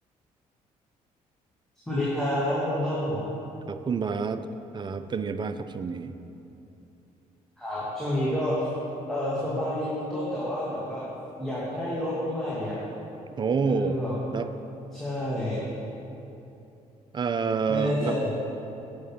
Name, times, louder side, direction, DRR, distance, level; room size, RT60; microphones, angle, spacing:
voice 1, 1.9-3.2 7.6-8.7 9.1-11.0 11.4-12.8 13.6-14.2 14.9-15.6 17.7-18.3, left 1 dB, ahead, -9 dB, 1.7 m, -29 dB
voice 2, 3.7-4.5 4.7-6.1 13.4-14.0 14.3-14.5 17.1-18.1, right 5 dB, 25° right, 10 dB, 0.4 m, -28 dB
7.1 x 5.0 x 5.8 m, 2.8 s
figure-of-eight pair, 45°, 20 cm